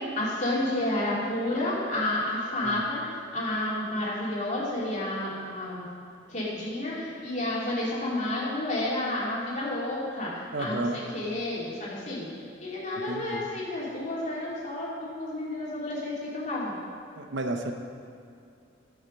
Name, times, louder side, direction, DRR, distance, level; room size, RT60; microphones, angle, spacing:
voice 1, 0.0-5.9 6.3-12.3 12.6-16.7, left 1 dB, 40° left, -6 dB, 2.7 m, -30 dB
voice 2, 10.5-11.0 13.1-13.5 17.1-17.7, right 2 dB, 65° right, 5 dB, 0.8 m, -32 dB
11.5 x 7.3 x 5.4 m, 2.5 s
head